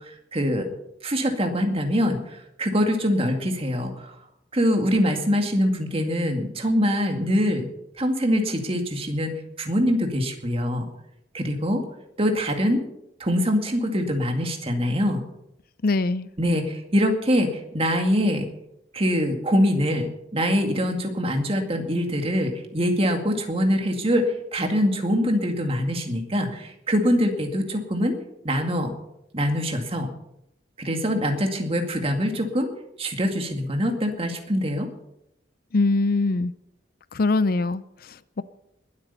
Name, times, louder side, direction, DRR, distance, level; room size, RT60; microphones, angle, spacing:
voice 1, 0.3-0.7 1.0-4.1 4.5-7.7 8.0-9.3 9.6-10.9 11.3-11.8 12.2-12.8 13.2-15.2 16.4-18.5 18.9-28.2 28.4-28.9 29.3-30.1 30.8-32.7 33.0-34.9, equal, 30° right, 4 dB, 2.2 m, -24 dB
voice 2, 15.8-16.3 35.7-36.5 37.1-38.4, left 3 dB, 55° left, 16 dB, 0.5 m, -23 dB
21.0 x 8.5 x 5.6 m, 0.80 s
head